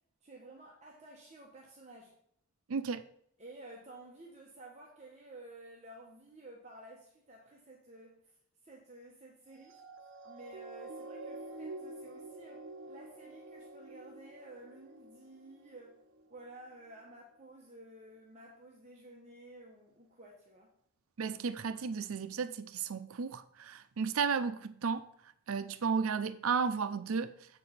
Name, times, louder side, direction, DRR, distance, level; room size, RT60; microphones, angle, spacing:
voice 1, 0.2-2.2 3.4-8.3 8.6-9.8 10.2-16.0 16.3-20.7, right 2 dB, 30° right, 1.1 m, -53 dB
voice 2, 2.7-3.0 21.2-25.0 25.5-27.3, right 5 dB, 80° right, 0.5 m, -33 dB
sound 1, 9.6-16.3 16.9-17.0, right 2 dB, 60° right, 1.0 m, -48 dB
7.7 x 4.8 x 5.6 m
head